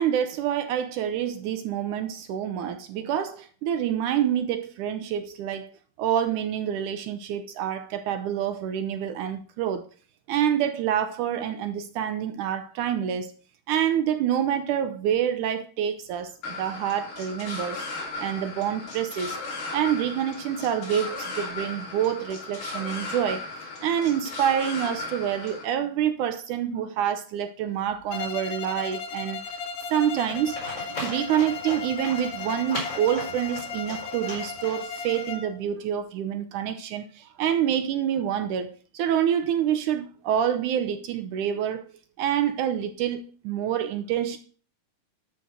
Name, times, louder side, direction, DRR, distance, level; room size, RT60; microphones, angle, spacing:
voice 1, 0.0-5.7 6.0-9.9 10.3-13.3 13.7-19.4 19.7-29.4 29.9-30.6 31.0-41.9 42.2-44.4, right 9 dB, 75° right, 2.0 m, -27 dB
sound 1, 16.4-25.6, left 3 dB, 55° left, 4.2 m, -36 dB
Bowed string instrument, 28.1-35.6, left 5 dB, 80° left, 1.3 m, -36 dB
Livestock farm animals working animals, 30.2-35.2, left 1 dB, 20° left, 5.1 m, -38 dB
12.5 x 5.4 x 6.3 m
omnidirectional pair, 4.0 m